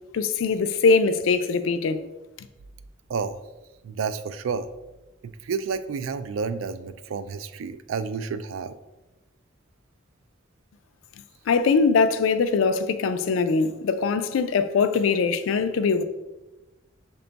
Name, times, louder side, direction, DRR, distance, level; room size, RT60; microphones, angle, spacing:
voice 1, 0.1-2.0 11.5-16.0, left 4 dB, 90° left, 0.4 m, -22 dB
voice 2, 3.8-4.7 5.2-8.7, right 5 dB, 90° right, 0.3 m, -30 dB
5.8 x 2.3 x 3.9 m
head